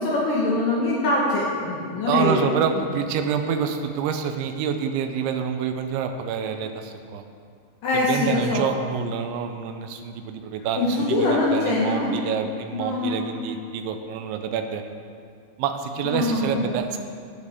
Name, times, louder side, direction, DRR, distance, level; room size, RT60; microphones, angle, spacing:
voice 1, 0.0-2.4 7.8-8.6 10.8-12.2 12.7-13.1 16.0-16.8, left 2 dB, 70° left, -5 dB, 2.3 m, -23 dB
voice 2, 2.1-7.2 7.9-14.8 15.6-17.0, right 7 dB, 85° right, 6 dB, 3.0 m, -27 dB
18.5 x 6.5 x 3.6 m, 2.2 s
omnidirectional pair, 5.3 m